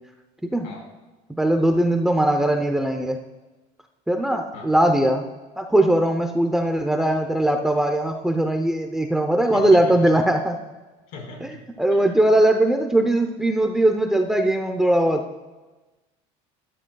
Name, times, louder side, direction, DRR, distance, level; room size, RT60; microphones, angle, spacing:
voice 1, 1.4-3.2 4.1-5.2 5.6-10.6 11.4-15.2, right 1 dB, 5° right, 4 dB, 0.6 m, -20 dB
voice 2, 9.5-10.1 11.1-11.6 11.9-12.0, left 3 dB, 70° left, 0 dB, 4.6 m, -40 dB
18.5 x 12.0 x 2.3 m, 1.2 s
cardioid pair, 155°, 15 cm